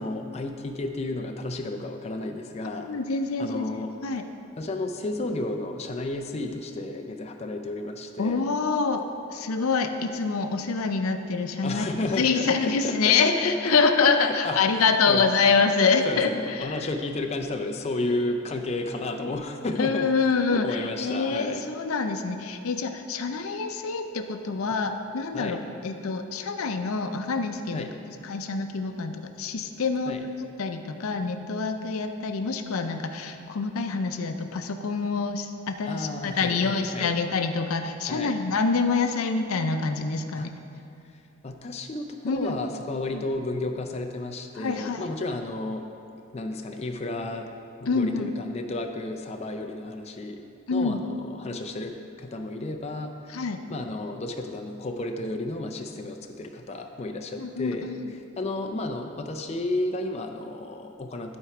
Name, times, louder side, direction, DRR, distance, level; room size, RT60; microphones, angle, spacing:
voice 1, 0.0-2.9 3.4-3.9 4.6-8.5 11.6-13.7 14.2-14.6 15.1-15.3 16.1-20.1 20.5-21.6 25.3-25.6 27.7-27.9 30.1-30.2 35.9-37.2 38.1-38.3 40.4-40.5 41.4-45.8 46.3-47.5 47.8-50.4 50.7-53.4 53.7-57.9 58.4-61.4, left 2 dB, 30° left, 4 dB, 0.4 m, -32 dB
voice 2, 2.8-4.2 8.2-16.9 19.8-25.6 25.8-27.9 28.2-40.5 42.2-42.5 43.1-43.2 44.6-45.1 47.9-48.3 50.7-51.0 53.3-53.6 57.4-58.1, left 4 dB, 90° left, 7 dB, 0.5 m, -26 dB
11.5 x 4.4 x 4.8 m, 2.6 s
head